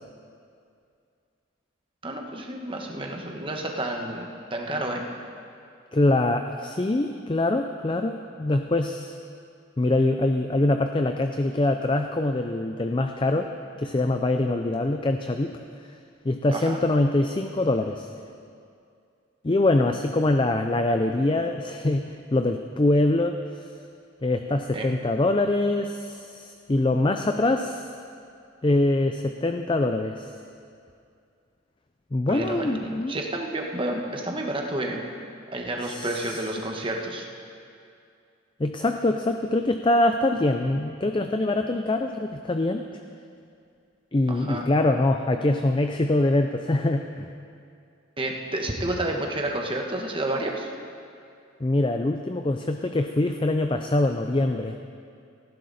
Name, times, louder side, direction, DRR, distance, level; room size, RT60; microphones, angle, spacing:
voice 1, 2.0-5.1 16.5-16.8 24.7-24.9 32.3-35.0 35.5-37.3 44.3-44.6 48.2-50.7, right 1 dB, 25° right, 1 dB, 1.4 m, -30 dB
voice 2, 5.9-9.2 9.8-13.5 13.8-15.5 16.2-18.1 19.4-23.4 24.2-27.9 28.6-30.3 32.1-33.1 35.8-36.4 38.6-42.9 44.1-47.3 51.6-54.8, left 2 dB, 25° left, 6 dB, 0.4 m, -24 dB
18.0 x 15.0 x 4.2 m, 2.4 s
head